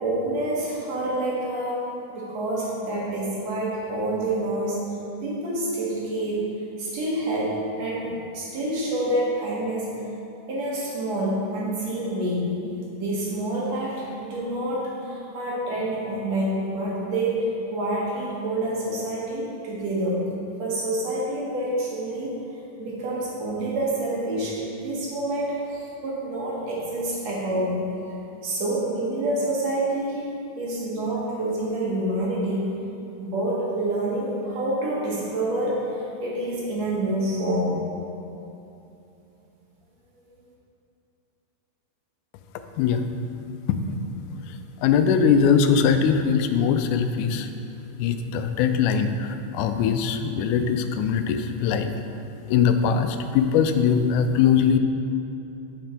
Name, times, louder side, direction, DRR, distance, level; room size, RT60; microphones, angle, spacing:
voice 1, 0.0-4.9 5.2-9.9 10.5-12.5 13.0-20.2 20.6-22.4 22.8-27.8 28.4-30.3 30.6-32.7 33.2-37.8, right 1 dB, 60° right, -5 dB, 2.5 m, -27 dB
voice 2, 44.8-47.5 48.0-51.9 52.5-54.8, left 7 dB, 90° left, 8 dB, 2.1 m, -21 dB
9.0 x 5.9 x 4.3 m, 2.8 s
omnidirectional pair, 3.5 m